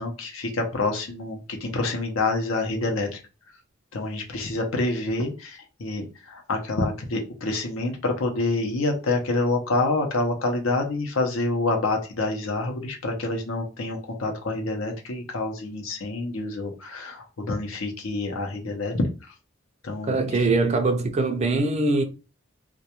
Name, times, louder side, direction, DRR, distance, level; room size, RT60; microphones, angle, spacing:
voice 1, 0.0-3.2 3.9-19.0 19.8-20.4, left 2 dB, 75° left, 0.7 m, -27 dB
voice 2, 20.0-22.0, right 3 dB, 35° right, 0.4 m, -22 dB
2.3 x 2.3 x 2.8 m
head